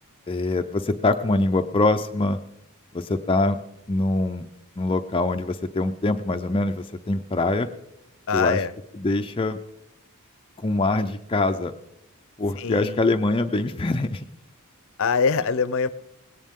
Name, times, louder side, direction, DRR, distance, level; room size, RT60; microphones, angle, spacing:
voice 1, 0.3-2.4 2.9-3.6 3.9-4.5 4.8-7.7 8.3-8.6 9.0-9.6 10.6-11.7 12.4-14.3, left 2 dB, 25° left, 6 dB, 0.5 m, -24 dB
voice 2, 8.3-8.7 12.6-13.0 15.0-15.9, left 5 dB, 65° left, 16 dB, 0.7 m, -23 dB
19.5 x 17.5 x 3.7 m, 0.80 s
head